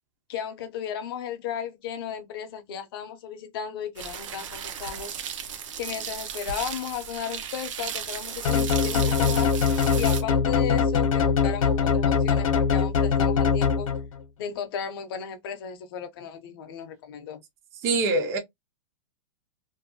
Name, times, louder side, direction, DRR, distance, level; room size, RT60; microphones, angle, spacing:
voice 1, 0.3-5.1 5.8-9.5 10.0-13.9 14.4-17.4, left 8 dB, 45° left, 0.6 m, -35 dB
sound 1, 4.0-10.2, right 8 dB, 70° right, 0.6 m, -35 dB
sound 2, 8.4-14.2, left 6 dB, 90° left, 0.6 m, -22 dB
voice 2, 17.8-18.4, right 3 dB, 15° right, 0.4 m, -23 dB
2.6 x 2.2 x 2.6 m
supercardioid pair, 165°, 17 cm